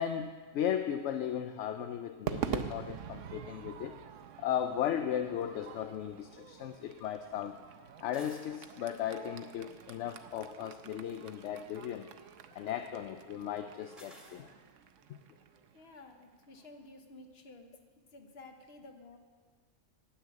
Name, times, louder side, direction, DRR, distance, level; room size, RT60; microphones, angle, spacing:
voice 1, 0.0-4.0 4.4-7.6 8.0-12.1 12.5-14.5, left 9 dB, 70° left, 8 dB, 0.9 m, -36 dB
Crowd / Fireworks, 2.3-16.7, right 8 dB, 75° right, 1.0 m, -45 dB
sound 1, 8.1-8.5 10.9-11.4 14.0-14.4, equal, ahead, 1.7 m, -55 dB
voice 2, 15.7-17.7 18.1-19.2, left 2 dB, 55° left, 5 dB, 1.3 m, -53 dB
10.0 x 8.6 x 8.4 m, 1.5 s
omnidirectional pair, 1.3 m